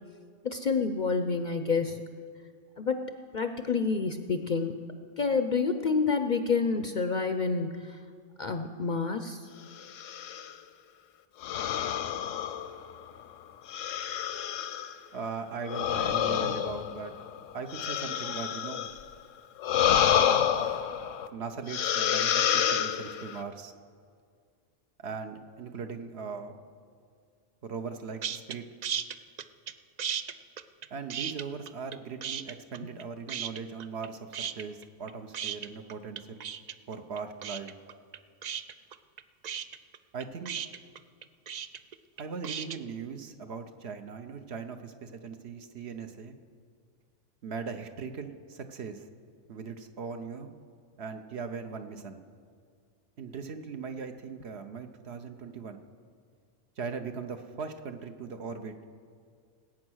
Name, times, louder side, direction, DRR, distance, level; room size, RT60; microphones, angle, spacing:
voice 1, 0.4-2.0 2.8-8.0 8.4-9.5, left 4 dB, 50° left, 8 dB, 0.6 m, -29 dB
sound 1, 9.8-10.5 11.4-13.1 13.7-15.0 15.7-19.0 19.6-21.3 21.7-23.4, left 9 dB, 80° left, 1.1 m, -28 dB
voice 2, 15.1-17.1 17.5-18.9 21.3-23.7 25.0-26.6 27.6-28.7 30.9-36.5 36.9-37.7 40.1-40.6 42.2-46.3 47.4-49.1 49.5-50.5 51.0-52.2 53.2-55.8 56.8-58.7, right 5 dB, 60° right, 7 dB, 1.0 m, -39 dB
sound 2, 28.2-28.6 28.8-29.7 30.0-32.0 32.2-33.0 33.3-34.1 34.3-42.8, right 8 dB, 85° right, 0.3 m, -35 dB
19.5 x 8.7 x 6.3 m, 2.1 s
omnidirectional pair, 1.3 m